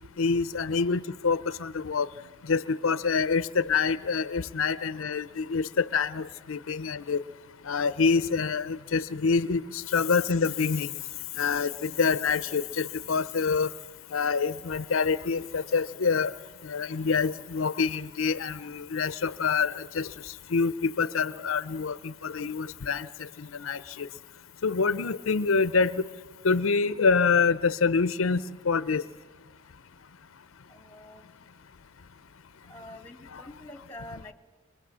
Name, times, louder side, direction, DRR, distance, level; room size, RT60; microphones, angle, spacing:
voice 1, 0.2-2.1 2.5-7.2 7.6-10.9 11.3-13.7 14.1-16.3 16.6-24.1 24.6-26.1 26.4-29.0 33.3-33.4, left 5 dB, 80° left, 16 dB, 0.6 m, -26 dB
voice 2, 30.7-31.3 32.6-34.3, left 1 dB, 10° left, 9 dB, 1.4 m, -46 dB
25.0 x 20.5 x 7.4 m, 1.4 s
head